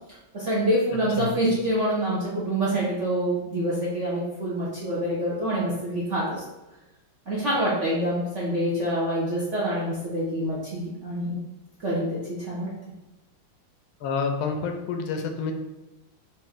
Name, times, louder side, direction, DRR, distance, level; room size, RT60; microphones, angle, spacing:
voice 1, 0.3-6.4 7.3-11.4 11.8-12.7, right 1 dB, 55° right, -7 dB, 0.8 m, -26 dB
voice 2, 14.0-15.5, left 5 dB, 85° left, 4 dB, 1.4 m, -28 dB
4.3 x 2.5 x 3.5 m, 1.0 s
omnidirectional pair, 2.2 m